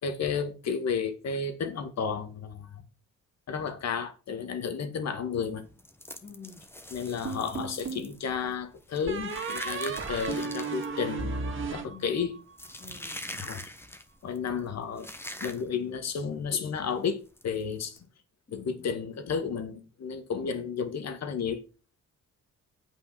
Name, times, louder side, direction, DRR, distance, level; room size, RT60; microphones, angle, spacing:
voice 1, 0.0-2.8 3.5-5.6 6.9-11.4 11.7-12.4 13.4-13.7 14.2-15.1 15.4-18.0 18.5-21.7, left 6 dB, 60° left, 2.0 m, -32 dB
sound 1, 5.5-16.0 16.2-16.5 16.8-16.9 17.4-18.0, left 1 dB, 10° left, 1.3 m, -43 dB
voice 2, 6.2-6.6 11.8-12.1 12.8-13.2 18.5-18.9 20.4-20.7, left 4 dB, 30° left, 2.8 m, -48 dB
sound 2, 7.2-8.1 9.1-12.5, right 4 dB, 40° right, 2.5 m, -35 dB
8.6 x 5.7 x 5.9 m
cardioid pair, 90°, 30 cm